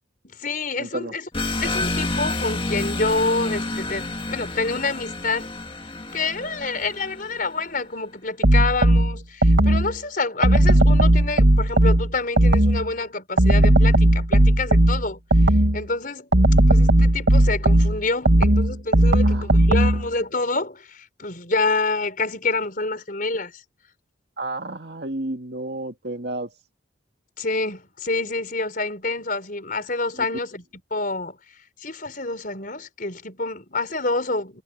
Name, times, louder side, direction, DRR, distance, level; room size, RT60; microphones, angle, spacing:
voice 1, 0.2-1.3 1.6-5.5 6.1-15.2 15.7-16.3 16.6-23.6 27.4-30.6 30.9-31.4 31.8-34.6, left 3 dB, 45° left, 5.3 m, -27 dB
voice 2, 0.8-1.1 19.2-19.5 24.4-26.5 30.2-30.3, right 2 dB, 60° right, 2.1 m, -31 dB
sound 1, 1.3-7.6, left 2 dB, 25° left, 1.9 m, -29 dB
sound 2, 8.4-10.0 10.4-12.9 13.4-15.9 16.3-20.1, right 1 dB, 80° right, 2.0 m, -16 dB
head